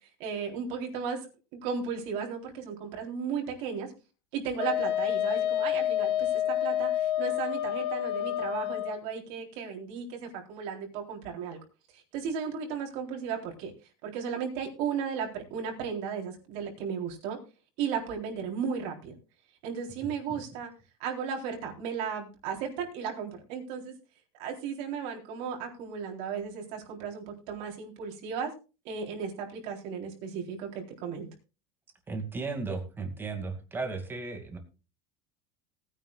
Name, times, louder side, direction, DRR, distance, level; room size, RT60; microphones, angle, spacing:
voice 1, 0.2-1.3 1.6-3.9 4.3-11.6 11.9-13.7 14.0-17.4 17.8-19.1 19.6-20.7 21.0-24.0 24.4-28.5 28.8-31.3, right 6 dB, 60° right, 2 dB, 3.9 m, -35 dB
Wind instrument woodwind instrument, 4.6-9.0, left 11 dB, 80° left, 1.3 m, -29 dB
voice 2, 32.1-34.6, right 4 dB, 15° right, 5 dB, 2.4 m, -35 dB
19.0 x 9.8 x 2.4 m, 0.32 s
supercardioid pair, 150°, 13 cm